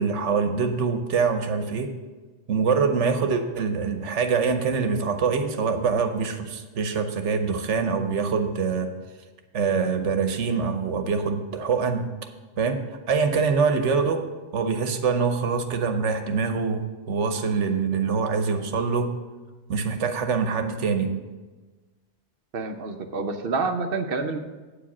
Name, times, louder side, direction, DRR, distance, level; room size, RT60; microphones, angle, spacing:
voice 1, 0.0-1.9 2.5-8.9 9.5-12.0 12.6-12.8 13.1-14.2 14.5-19.1 19.7-21.1, right 5 dB, 80° right, 7 dB, 1.1 m, -24 dB
voice 2, 22.5-24.4, right 4 dB, 55° right, 7 dB, 0.9 m, -28 dB
8.8 x 5.0 x 7.0 m, 1.2 s
omnidirectional pair, 1.2 m